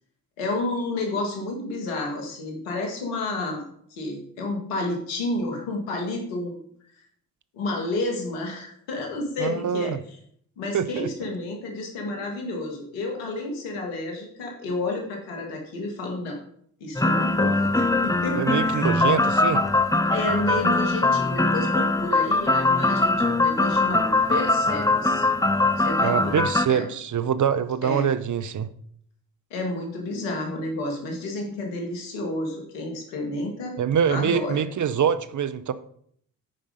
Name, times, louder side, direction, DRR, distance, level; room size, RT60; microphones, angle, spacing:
voice 1, 0.4-3.6 3.9-6.6 7.5-10.2 10.6-16.4 16.8-18.9 20.1-25.2 25.8-26.4 26.7-26.9 27.8-28.1 29.5-33.8 34.1-34.6, left 2 dB, 85° left, 2 dB, 2.0 m, -30 dB
voice 2, 9.4-10.0 10.7-11.1 18.4-19.6 26.0-28.7 33.8-35.7, right 8 dB, 45° right, 14 dB, 0.8 m, -24 dB
sound 1, 17.0-26.7, left 2 dB, 10° left, 0.8 m, -22 dB
9.1 x 5.3 x 5.2 m, 0.65 s
hypercardioid pair, 45°, 43 cm